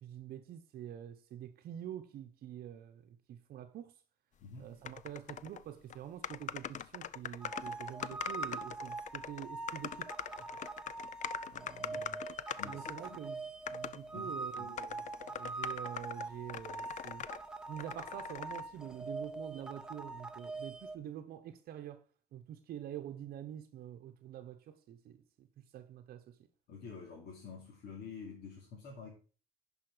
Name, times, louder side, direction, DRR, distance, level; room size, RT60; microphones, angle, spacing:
voice 1, 0.0-3.9 4.6-10.1 10.5-10.6 11.5-12.2 12.6-17.3 17.7-22.0 22.3-26.4, right 10 dB, 65° right, 0.8 m, -46 dB
voice 2, 4.4-4.7 11.8-12.1 12.6-13.2 14.1-14.8 26.7-29.1, left 5 dB, 70° left, 2.9 m, -49 dB
sound 1, 4.8-5.6 5.9-6.0 6.2-13.2 13.7-14.0 14.5-17.4 17.8-18.6, left 9 dB, 45° left, 0.5 m, -43 dB
sound 2, 7.4-21.0, right 3 dB, 5° right, 0.8 m, -43 dB
10.5 x 5.5 x 4.9 m
cardioid pair, 110°, 17 cm